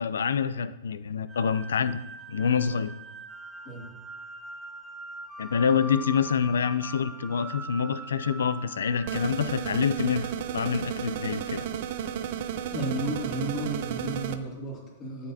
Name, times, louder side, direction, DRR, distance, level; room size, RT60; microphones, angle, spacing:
voice 1, 0.0-2.0 2.3-2.9 5.4-11.7, left 6 dB, 80° left, 14 dB, 0.4 m, -26 dB
sound 1, 1.3-10.5, right 2 dB, 15° right, 0.6 m, -43 dB
sound 2, 9.1-14.4, right 9 dB, 60° right, 0.5 m, -33 dB
voice 2, 12.7-15.3, right 1 dB, 30° left, -3 dB, 2.6 m, -33 dB
9.3 x 6.6 x 2.8 m, 0.99 s
hypercardioid pair, 120°, 0 cm